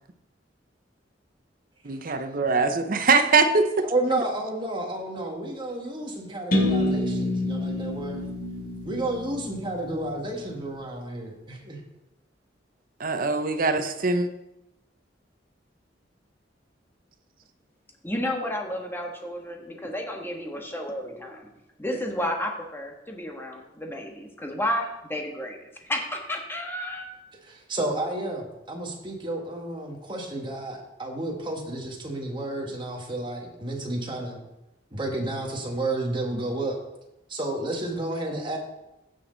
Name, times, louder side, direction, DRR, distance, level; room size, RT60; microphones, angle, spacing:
voice 1, 1.8-3.9 13.0-14.3, right 4 dB, 50° right, 8 dB, 0.8 m, -22 dB
voice 2, 3.8-8.2 8.8-11.8 27.5-34.4 34.9-36.8 37.3-38.6, right 2 dB, 25° right, 0 dB, 1.8 m, -31 dB
sound 1, 6.5-10.4, left 1 dB, 50° left, 2.5 m, -28 dB
voice 3, 18.0-21.5 21.8-27.1, left 1 dB, 10° left, 1 dB, 1.4 m, -32 dB
15.5 x 6.2 x 4.0 m, 0.91 s
head